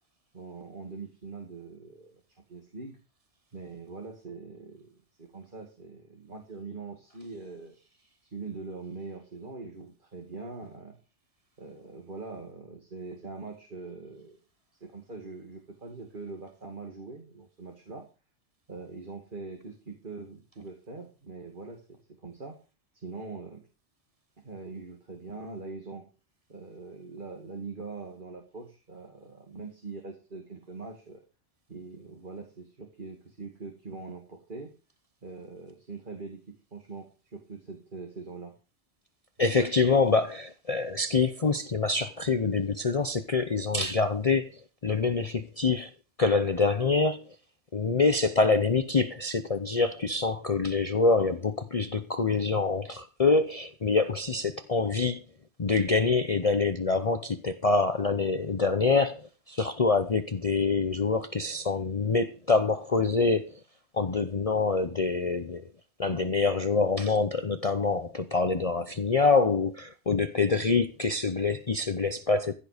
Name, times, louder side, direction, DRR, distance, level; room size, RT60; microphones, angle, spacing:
voice 1, 0.3-2.2 2.5-3.0 3.5-7.7 8.2-11.0 11.6-14.4 14.8-18.0 18.7-22.6 22.9-23.6 24.4-26.1 26.5-31.2 31.7-34.7 35.2-38.5, right 3 dB, 45° right, 2.5 m, -42 dB
voice 2, 39.4-44.5 44.8-45.9 46.2-47.2 47.7-55.2 55.6-59.2 59.5-63.5 63.9-65.6 66.0-72.5, left 4 dB, 35° left, 0.8 m, -25 dB
15.5 x 8.8 x 5.1 m
omnidirectional pair, 1.2 m